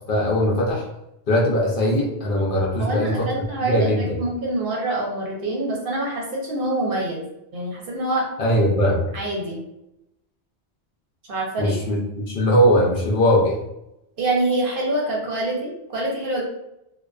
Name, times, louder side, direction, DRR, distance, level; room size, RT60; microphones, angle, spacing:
voice 1, 0.1-0.8 1.3-3.3 3.6-4.2 8.4-9.1 11.6-13.6, equal, 60° left, -3 dB, 0.7 m, -20 dB
voice 2, 2.8-8.2 9.1-9.6 11.3-11.8 14.2-16.4, right 2 dB, 60° right, -2 dB, 0.8 m, -26 dB
2.4 x 2.2 x 2.3 m, 0.86 s
omnidirectional pair, 1.1 m